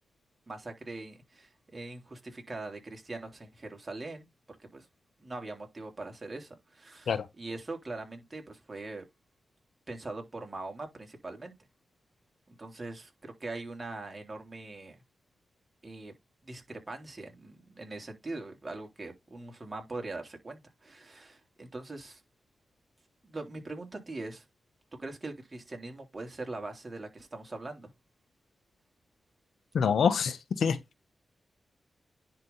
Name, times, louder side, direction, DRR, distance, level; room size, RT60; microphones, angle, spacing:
voice 1, 0.5-4.9 5.2-9.0 9.9-11.5 12.5-15.0 15.8-16.1 16.4-22.2 23.2-24.4 25.0-27.9, right 2 dB, 30° right, 3.3 m, -42 dB
voice 2, 29.7-30.8, left 6 dB, 80° left, 0.9 m, -26 dB
10.5 x 3.6 x 4.0 m
cardioid pair, 60°, 0 cm